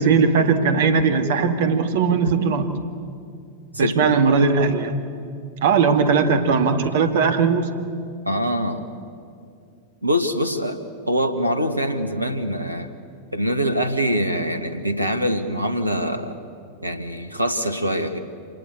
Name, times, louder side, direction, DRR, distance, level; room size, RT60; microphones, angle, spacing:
voice 1, 0.0-2.8 3.8-5.0 5.6-7.7, right 5 dB, 55° right, 8 dB, 1.9 m, -19 dB
voice 2, 3.7-4.1 8.2-8.8 10.0-12.9 13.3-16.4 16.8-18.2, equal, 85° right, 9 dB, 1.6 m, -24 dB
27.0 x 19.0 x 8.4 m, 2.4 s
figure-of-eight pair, 90°, 0 cm